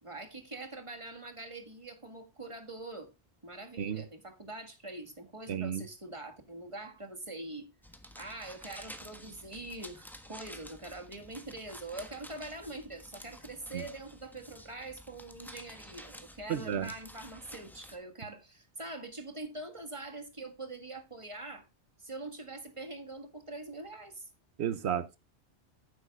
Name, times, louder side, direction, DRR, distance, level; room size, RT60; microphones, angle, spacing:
voice 1, 0.0-3.1 3.4-7.7 8.1-21.7 22.0-24.3, right 2 dB, 30° right, 1.8 m, -44 dB
voice 2, 5.5-5.8 13.7-13.8 16.5-16.9 24.6-25.2, right 9 dB, 80° right, 1.0 m, -32 dB
sound 1, 7.8-18.0, equal, ahead, 1.2 m, -51 dB
15.0 x 8.0 x 2.4 m
omnidirectional pair, 1.1 m